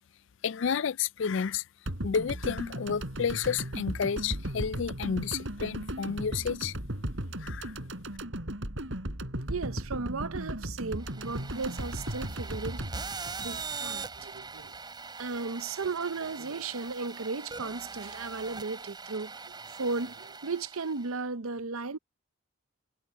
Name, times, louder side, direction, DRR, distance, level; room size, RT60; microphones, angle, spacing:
voice 1, 0.4-1.6 2.0-6.7 7.4-7.7, left 6 dB, 65° left, 0.4 m, -31 dB
sound 1, 1.9-14.2 14.5-14.6, right 1 dB, 70° right, 4.2 m, -36 dB
voice 2, 9.5-12.9 13.4-14.7 15.2-22.0, right 4 dB, 85° right, 0.8 m, -35 dB
sound 2, 11.0-21.2, right 4 dB, 20° right, 5.2 m, -42 dB
head